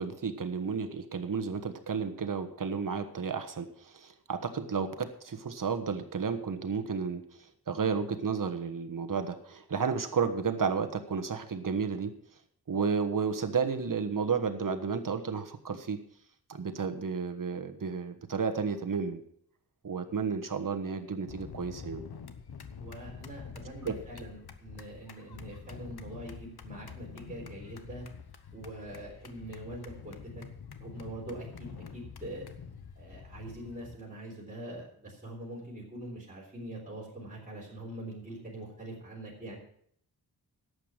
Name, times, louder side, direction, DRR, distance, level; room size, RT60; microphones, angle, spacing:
voice 1, 0.0-7.2 7.7-12.1 12.7-16.0 16.5-19.2 19.8-22.0 23.8-23.9, right 5 dB, 55° right, 8 dB, 1.4 m, -32 dB
sound 1, 21.3-33.9, left 6 dB, 80° left, 1.1 m, -47 dB
voice 2, 22.8-28.0 28.5-30.4 30.8-32.5 33.0-39.6, right 1 dB, 20° right, -4 dB, 3.9 m, -43 dB
11.5 x 8.0 x 7.3 m, 0.65 s
wide cardioid pair, 105°, 38 cm